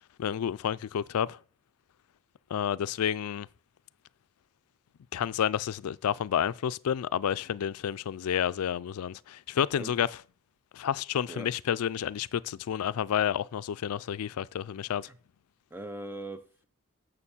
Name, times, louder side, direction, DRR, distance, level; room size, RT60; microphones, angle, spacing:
voice 1, 0.2-1.4 2.5-3.5 5.1-10.1 10.7-15.1, left 9 dB, 90° left, 0.4 m, -30 dB
voice 2, 15.7-16.6, right 1 dB, 10° right, 0.6 m, -40 dB
6.8 x 6.6 x 7.1 m
head